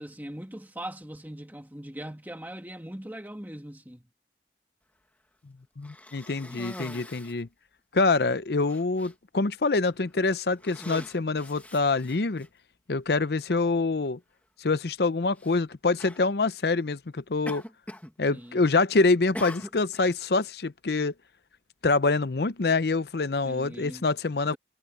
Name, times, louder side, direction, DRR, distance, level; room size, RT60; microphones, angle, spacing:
voice 1, 0.0-4.1 18.3-18.6 23.4-24.1, right 1 dB, 10° right, 1.8 m, -40 dB
voice 2, 5.8-7.5 7.9-12.5 12.9-14.2 14.6-17.6 18.2-21.1 21.8-24.6, left 3 dB, 65° left, 0.7 m, -25 dB
Cough, 5.8-7.4 8.2-8.3 8.7-9.1 9.9-10.1 10.5-12.5 13.4-13.5 15.3-15.6 16.0-16.3 17.5-18.1 18.4-18.8 19.3-20.1, left 1 dB, 10° left, 1.5 m, -42 dB
head